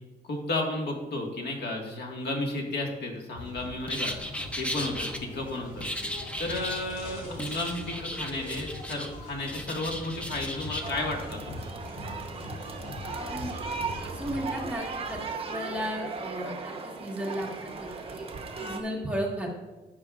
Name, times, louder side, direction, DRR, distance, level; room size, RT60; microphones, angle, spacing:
voice 1, 0.2-4.1 4.6-5.1 5.3-5.8 6.4-11.5, left 2 dB, 90° left, 1 dB, 1.7 m, -33 dB
sound 1, 3.3-14.7, left 1 dB, 60° left, 3.3 m, -42 dB
sound 2, 3.9-5.2 5.8-6.9 7.4-9.1 9.4-10.9, equal, 5° left, 0.6 m, -36 dB
voice 2, 7.0-7.4 13.1-13.5 14.1-18.3 18.6-19.5, equal, 10° right, -3 dB, 1.5 m, -35 dB
sound 3, 10.8-18.8, right 4 dB, 35° right, 0.9 m, -37 dB
12.0 x 8.5 x 2.4 m, 1.1 s
wide cardioid pair, 160°, 17 cm